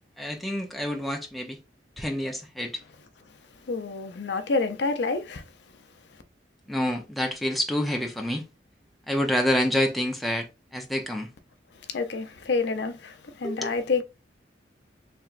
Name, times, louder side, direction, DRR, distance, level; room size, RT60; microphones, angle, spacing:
voice 1, 0.2-1.6 2.0-2.8 6.7-8.4 9.1-10.5 10.7-11.3 13.4-13.7, left 1 dB, ahead, 0.5 m, -27 dB
voice 2, 3.7-5.4 11.9-14.0, left 4 dB, 70° left, 0.5 m, -28 dB
3.3 x 2.9 x 2.4 m
head